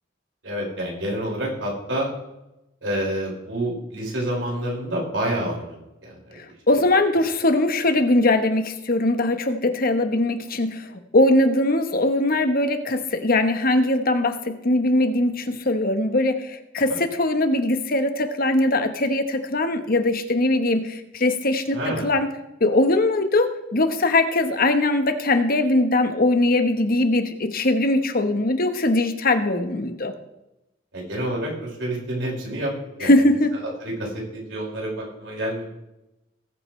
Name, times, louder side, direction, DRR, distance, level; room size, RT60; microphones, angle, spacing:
voice 1, 0.4-2.1 2.8-6.4 21.7-22.1 30.9-32.7 33.0-33.1 33.8-35.7, right 1 dB, 85° right, -3 dB, 5.3 m, -28 dB
voice 2, 6.7-21.8 22.0-22.3 22.6-30.1 33.0-33.5, left 2 dB, 50° left, 8 dB, 1.2 m, -21 dB
19.5 x 8.7 x 3.2 m, 0.92 s
head